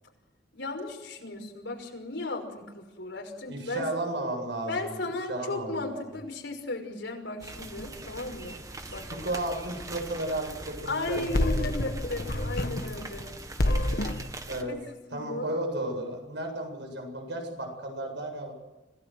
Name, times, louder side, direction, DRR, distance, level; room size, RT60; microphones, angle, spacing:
voice 1, 0.5-3.8 4.7-9.1 10.9-13.3 14.7-15.5, left 2 dB, 85° left, 3 dB, 5.9 m, -35 dB
voice 2, 3.5-5.0 5.3-6.1 9.2-11.2 11.6-11.9 14.5-14.8 15.1-18.5, right 1 dB, 75° right, 3 dB, 7.9 m, -33 dB
sound 1, 7.4-14.6, right 2 dB, 20° right, 1.8 m, -42 dB
sound 2, 11.1-13.3 13.6-14.3, left 1 dB, 55° left, 1.4 m, -28 dB
26.5 x 18.0 x 8.0 m, 1.1 s
head